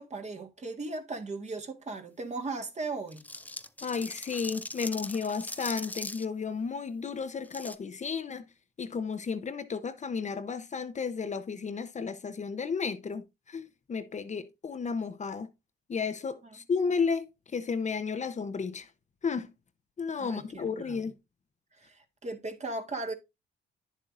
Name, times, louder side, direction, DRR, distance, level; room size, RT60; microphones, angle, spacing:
voice 1, 0.0-3.3 20.2-21.0 21.7-23.1, right 3 dB, 35° right, 1.8 m, -37 dB
sound 1, 3.1-6.2 7.4-7.8, left 2 dB, 10° left, 0.6 m, -40 dB
voice 2, 3.8-8.5 8.8-15.5 15.9-17.2 17.5-18.9 19.2-19.5 20.0-21.1, left 5 dB, 35° left, 0.8 m, -33 dB
9.6 x 7.2 x 2.6 m
cardioid pair, 90°, 20 cm